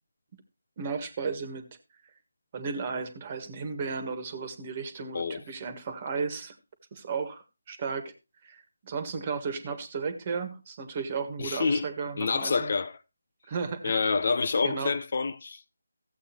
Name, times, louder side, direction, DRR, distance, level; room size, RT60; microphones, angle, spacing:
voice 1, 0.8-1.7 2.5-6.5 6.9-8.1 8.4-12.7 13.5-14.0 14.6-14.9, right 5 dB, 30° right, 1.6 m, -34 dB
voice 2, 11.4-11.9 12.2-12.9 13.8-15.8, left 4 dB, 50° left, 0.8 m, -27 dB
14.5 x 8.3 x 3.0 m
figure-of-eight pair, 160°, 0 cm